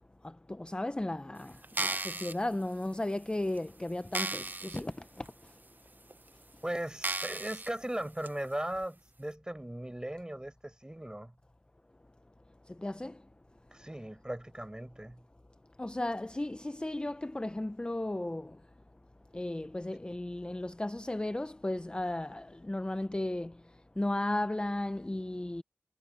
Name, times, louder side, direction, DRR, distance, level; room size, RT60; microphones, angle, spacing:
voice 1, 0.6-1.5 1.8-4.9 12.8-13.1 15.8-18.5 19.3-23.5 24.0-25.6, left 1 dB, 20° left, 0.6 m, -34 dB
sound 1, 1.6-2.3 3.0-3.1 3.6-3.7 4.1-4.8 5.3-5.4 6.1-6.2 7.0-7.7 8.2-8.3, right 2 dB, 40° right, 0.8 m, -34 dB
voice 2, 6.6-11.3 13.7-15.2, right 1 dB, 15° right, 5.0 m, -38 dB
cardioid pair, 40°, 5 cm